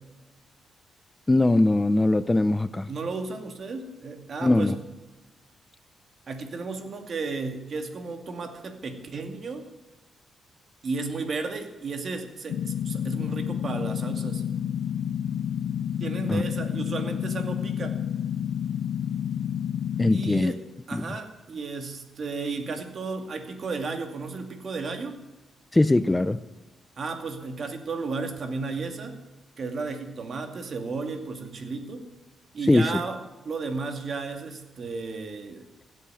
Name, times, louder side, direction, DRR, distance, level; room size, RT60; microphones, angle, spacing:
voice 1, 1.3-2.9 4.4-4.7 16.3-16.4 20.0-20.5 20.9-21.1 25.7-26.4 32.7-32.9, left 2 dB, 15° left, 0.5 m, -21 dB
voice 2, 2.9-4.8 6.3-9.6 10.8-14.4 16.0-18.0 20.1-20.6 20.9-25.2 27.0-29.2 29.6-32.0 32.5-33.2 33.4-35.8, right 4 dB, 50° right, 2.4 m, -33 dB
sound 1, 12.5-20.4, left 9 dB, 80° left, 0.5 m, -29 dB
16.0 x 8.5 x 9.1 m
cardioid pair, 115°, 0 cm